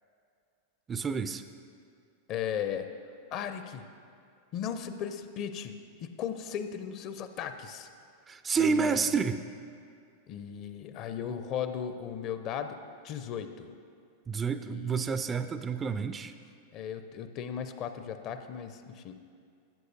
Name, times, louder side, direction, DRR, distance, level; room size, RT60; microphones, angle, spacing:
voice 1, 0.9-1.4 8.3-9.4 14.3-16.3, right 5 dB, 20° right, 10 dB, 0.3 m, -29 dB
voice 2, 2.3-2.9 3.3-3.9 4.5-5.7 6.0-7.9 8.6-9.1 10.3-12.8 13.0-13.7 14.7-15.0 16.7-19.2, left 8 dB, 40° left, 9 dB, 0.5 m, -36 dB
15.0 x 7.9 x 2.7 m, 2.3 s
figure-of-eight pair, 90°, 0 cm